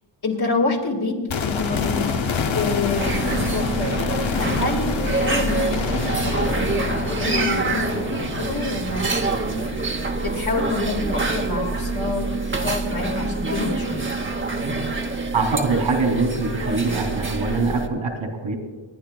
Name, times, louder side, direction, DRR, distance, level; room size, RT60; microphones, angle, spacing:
voice 1, 0.2-2.1 2.4-7.8 8.1-9.1 10.2-14.1, left 3 dB, 50° left, 0 dB, 2.2 m, -27 dB
sound 1, 1.3-11.3 11.6-11.7, left 5 dB, 75° left, 0.9 m, -28 dB
sound 2, 2.9-17.9, right 3 dB, 25° right, 0.9 m, -26 dB
voice 2, 15.3-18.6, right 3 dB, 80° right, 4 dB, 2.9 m, -23 dB
28.5 x 10.5 x 2.3 m, 1.3 s
wide cardioid pair, 120°, 47 cm